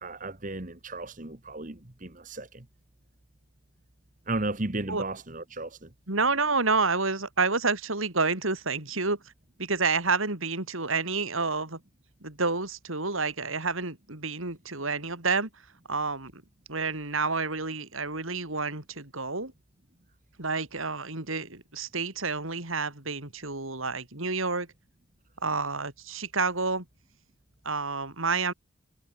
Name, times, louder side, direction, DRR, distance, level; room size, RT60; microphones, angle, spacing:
voice 1, 0.0-2.7 4.3-5.9, right 2 dB, 40° right, 1.6 m, -34 dB
voice 2, 6.1-9.2 9.6-11.8 12.2-15.5 15.9-16.4 16.7-19.5 20.4-24.7 25.4-26.9 27.6-28.5, right 4 dB, 75° right, 3.9 m, -29 dB
head